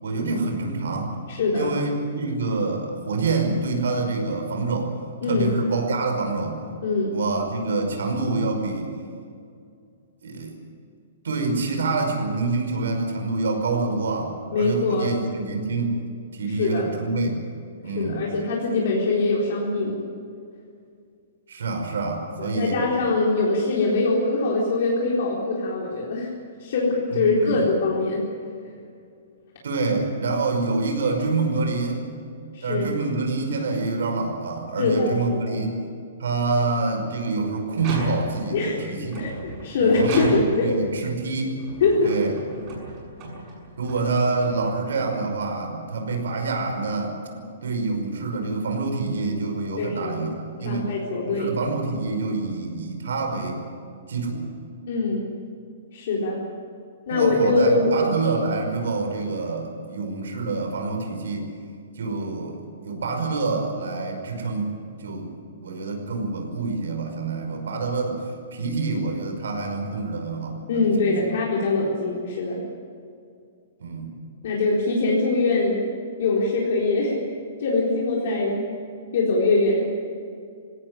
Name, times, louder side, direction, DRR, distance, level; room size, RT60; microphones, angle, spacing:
voice 1, 0.0-1.2 1.5-4.9 5.3-6.6 7.1-8.9 10.2-10.5 11.2-16.0 16.3-17.4 17.8-18.2 21.5-22.8 27.1-27.6 29.6-32.0 32.6-35.8 36.2-39.2 39.8-41.6 42.0-42.3 43.8-47.2 47.6-50.3 50.6-50.9 51.3-53.6 54.1-54.5 57.1-61.5 62.0-62.6 62.8-64.7 65.0-65.3 65.6-68.2 68.5-71.2 73.8-74.1, right 3 dB, 85° right, 4 dB, 5.5 m, -26 dB
voice 2, 1.3-1.7 5.2-5.5 6.8-7.2 14.5-15.1 16.5-16.9 18.0-20.0 22.4-26.3 26.6-28.2 32.5-32.9 34.8-35.6 38.5-38.9 39.2-40.7 41.8-42.1 49.8-50.2 50.6-51.5 54.9-55.3 55.9-56.4 57.1-57.9 70.7-72.6 74.4-75.9 76.2-77.2 77.6-78.7 79.1-79.9, left 3 dB, 50° left, -4 dB, 4.1 m, -23 dB
sound 1, 37.7-38.5 39.1-40.8 41.5-45.0, right 2 dB, 25° right, 6.8 m, -35 dB
20.0 x 17.5 x 9.9 m, 2.3 s
hypercardioid pair, 175°, 0 cm